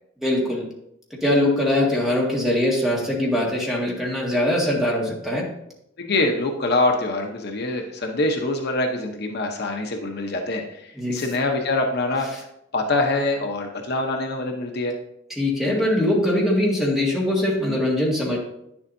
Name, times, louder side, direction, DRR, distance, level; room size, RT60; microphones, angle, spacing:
voice 1, 0.2-0.6 1.2-5.4 11.0-11.2 15.4-18.4, left 1 dB, ahead, -3 dB, 1.7 m, -22 dB
voice 2, 6.0-12.4 12.7-14.9, left 2 dB, 55° left, 3 dB, 0.8 m, -24 dB
9.8 x 7.1 x 2.6 m, 0.78 s
head